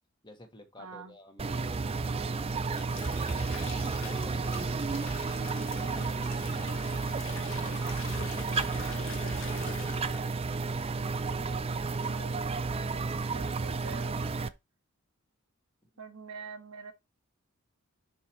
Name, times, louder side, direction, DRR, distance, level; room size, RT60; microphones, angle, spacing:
voice 1, 0.2-3.1 3.8-5.1 5.7-9.8 11.3-12.0, left 1 dB, 20° left, 1.4 m, -53 dB
voice 2, 0.8-1.1 12.0-14.5 16.0-16.9, right 4 dB, 85° right, 1.3 m, -46 dB
sound 1, 1.4-14.5, right 4 dB, 25° right, 0.4 m, -32 dB
sound 2, 2.7-10.5 10.8-11.1, left 4 dB, 60° left, 1.6 m, -45 dB
5.7 x 5.2 x 4.4 m
head